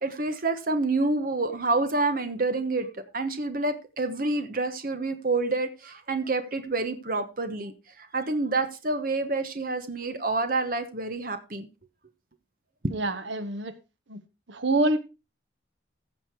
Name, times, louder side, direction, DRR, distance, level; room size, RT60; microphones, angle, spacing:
voice 1, 0.0-2.9 3.1-11.7, right 3 dB, 45° right, 1.1 m, -28 dB
voice 2, 12.9-13.7 14.1-14.2 14.5-15.0, right 2 dB, 75° right, 1.2 m, -26 dB
15.0 x 6.6 x 4.6 m
head